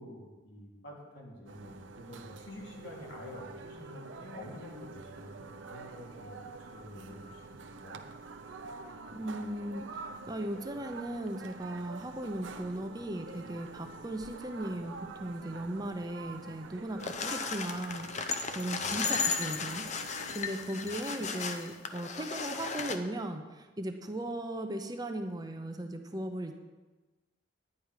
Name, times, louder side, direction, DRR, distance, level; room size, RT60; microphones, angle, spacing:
voice 1, 0.0-6.4 6.7-7.4 7.8-8.1 18.8-18.9 20.8-20.9, left 1 dB, 80° left, -3 dB, 2.9 m, -48 dB
sound 1, 1.5-20.4, right 4 dB, 85° right, 0.7 m, -47 dB
voice 2, 9.1-26.5, right 1 dB, 20° right, 5 dB, 0.8 m, -38 dB
sound 2, 17.0-23.0, left 5 dB, 40° left, 0.7 m, -35 dB
10.5 x 9.8 x 4.9 m, 1.2 s
head